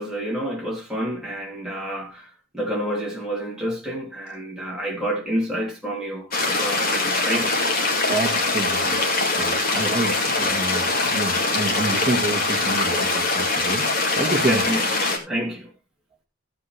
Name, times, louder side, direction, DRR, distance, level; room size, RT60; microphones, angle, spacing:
voice 1, 0.0-7.6 14.5-14.9 15.2-15.7, right 1 dB, 5° right, 2.7 m, -29 dB
sound 1, 6.3-15.2, left 3 dB, 45° left, 2.0 m, -23 dB
voice 2, 8.1-13.8 14.1-14.8, right 2 dB, 20° right, 1.4 m, -28 dB
14.0 x 7.7 x 3.1 m
head